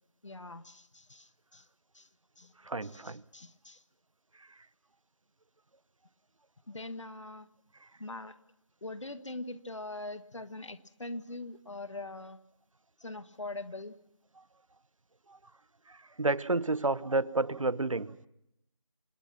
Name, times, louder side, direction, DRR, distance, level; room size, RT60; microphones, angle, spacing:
voice 1, 0.2-1.7 1.9-2.1 2.4-2.5 2.8-3.8 6.7-7.5 8.0-8.3 8.8-12.4 13.0-14.0, left 2 dB, 65° left, 1.6 m, -42 dB
voice 2, 2.7-3.2 15.9-18.3, right 2 dB, 80° right, 0.9 m, -30 dB
27.5 x 19.5 x 6.1 m
figure-of-eight pair, 170°, 17 cm